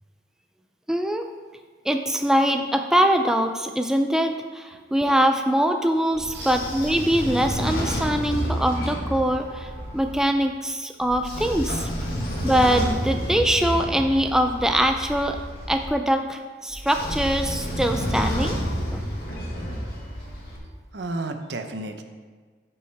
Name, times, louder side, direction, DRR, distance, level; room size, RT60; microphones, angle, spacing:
voice 1, 0.9-1.3 1.9-11.9 12.4-15.4 15.7-18.6 18.9-19.0, equal, 5° right, 5 dB, 0.3 m, -23 dB
Train / Sliding door, 6.1-10.2 11.0-15.9 16.7-20.6, equal, 60° left, 1.8 m, -30 dB
voice 2, 20.9-22.0, right 2 dB, 80° right, 6 dB, 0.7 m, -32 dB
12.5 x 5.5 x 3.4 m, 1.5 s
head